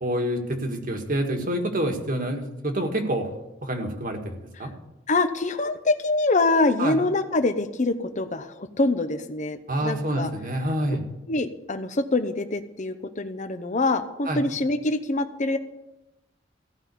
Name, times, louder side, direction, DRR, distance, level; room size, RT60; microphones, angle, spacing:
voice 1, 0.0-3.3 3.6-4.7 6.8-7.0 9.7-11.0 14.3-14.4, right 1 dB, 50° right, 3 dB, 1.8 m, -27 dB
voice 2, 5.1-10.3 11.3-15.6, left 2 dB, 40° left, 10 dB, 0.9 m, -25 dB
15.5 x 5.5 x 8.3 m, 0.96 s
head